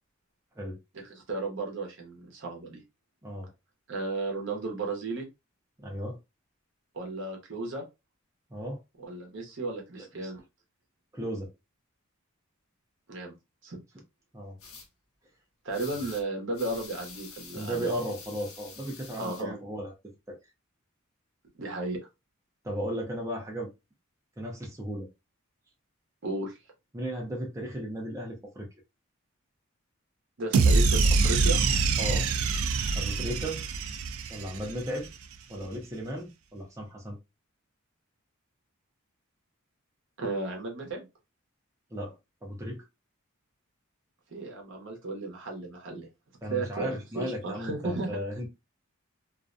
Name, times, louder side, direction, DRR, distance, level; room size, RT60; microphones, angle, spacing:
voice 1, 0.9-2.8 3.9-5.3 6.9-7.8 9.0-10.4 13.1-13.3 13.6-13.8 15.6-17.9 19.2-19.5 21.6-22.0 26.2-26.6 30.4-31.6 35.6-35.7 40.2-41.0 44.3-46.1 46.5-48.2, right 2 dB, 60° right, 0.8 m, -34 dB
voice 2, 3.2-3.5 5.8-6.2 8.5-8.8 10.0-10.3 11.1-11.5 14.3-14.6 17.5-19.9 20.3-20.4 22.6-23.7 24.4-25.1 26.9-28.7 32.0-32.3 32.9-33.6 34.3-35.1 35.5-37.2 41.9-42.9 46.4-48.5, equal, 15° right, 0.5 m, -35 dB
sound 1, 14.6-14.9 15.7-16.2 16.5-19.4, left 5 dB, 75° left, 0.8 m, -47 dB
sound 2, 30.5-34.9, right 4 dB, 80° right, 0.4 m, -24 dB
2.5 x 2.1 x 2.5 m
head